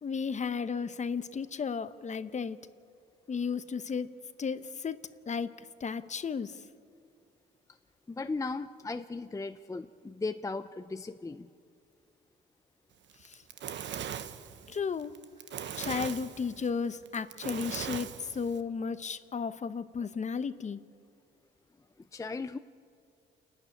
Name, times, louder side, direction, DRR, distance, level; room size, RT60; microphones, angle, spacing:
voice 1, 0.0-2.6 3.3-4.1 4.4-6.6 13.2-13.4 14.7-15.2 15.8-20.8, left 5 dB, 35° left, 13 dB, 0.9 m, -34 dB
voice 2, 8.1-11.5 22.1-22.6, left 3 dB, 15° left, 10 dB, 0.5 m, -37 dB
Fire, 13.1-18.6, right 9 dB, 65° right, 1.0 m, -39 dB
29.0 x 11.0 x 9.8 m, 2.4 s
cardioid pair, 90°, 20 cm